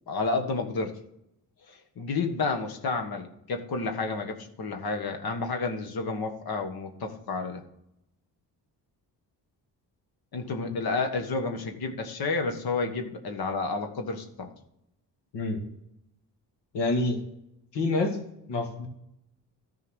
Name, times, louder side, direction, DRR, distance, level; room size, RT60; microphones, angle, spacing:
voice 1, 0.1-1.0 1.7-7.6 10.3-14.5, left 3 dB, 60° left, 5 dB, 1.6 m, -30 dB
voice 2, 16.7-17.2 17.7-18.2 18.5-18.9, left 2 dB, 85° left, 3 dB, 2.2 m, -27 dB
13.5 x 4.7 x 6.3 m, 0.81 s
cardioid pair, 80°, 40 cm